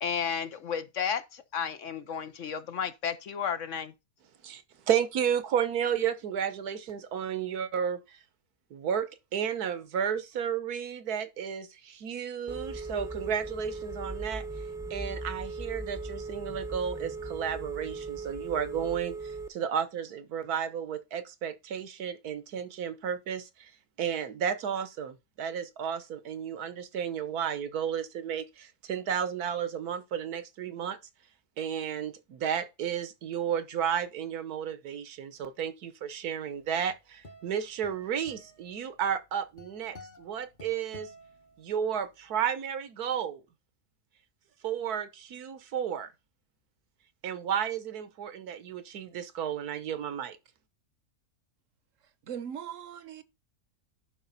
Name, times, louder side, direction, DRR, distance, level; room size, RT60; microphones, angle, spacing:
voice 1, 0.0-3.9, left 7 dB, 60° left, 1.1 m, -33 dB
voice 2, 4.4-8.2 8.7-14.4 14.9-23.7 24.0-31.0 31.6-41.1 41.6-43.4 44.6-46.1 47.2-50.4, right 8 dB, 80° right, 1.5 m, -32 dB
Telephone, 12.5-19.5, right 3 dB, 5° right, 0.7 m, -38 dB
sound 1, 36.6-42.1, equal, 35° left, 1.3 m, -52 dB
voice 3, 52.2-53.2, right 8 dB, 60° right, 1.1 m, -39 dB
11.0 x 5.2 x 4.0 m
omnidirectional pair, 1.6 m